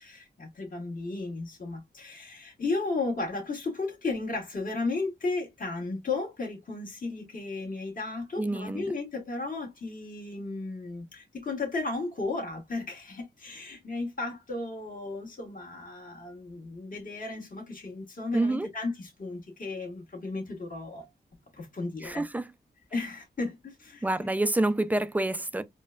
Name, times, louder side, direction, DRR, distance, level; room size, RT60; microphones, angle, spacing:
voice 1, 0.0-21.1 21.5-22.2 22.9-24.3, left 3 dB, 45° left, 1.6 m, -34 dB
voice 2, 8.4-8.8 18.3-18.7 22.0-22.4 24.0-25.6, right 2 dB, 10° right, 0.3 m, -27 dB
4.2 x 2.2 x 2.3 m
wide cardioid pair, 95°, 19 cm